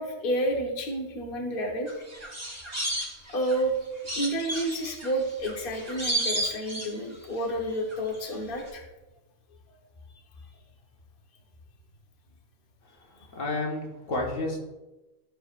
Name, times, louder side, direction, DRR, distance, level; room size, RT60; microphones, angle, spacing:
voice 1, 0.0-1.9 3.3-3.7 4.1-8.8, right 1 dB, 45° left, 0 dB, 1.3 m, -30 dB
sound 1, 1.9-3.6 4.1-7.4 7.7-8.3 8.6-8.7, right 1 dB, 30° right, 2.3 m, -33 dB
voice 2, 13.3-14.6, left 2 dB, 70° left, -1 dB, 1.6 m, -30 dB
13.0 x 6.5 x 2.5 m, 1.1 s
omnidirectional pair, 1.4 m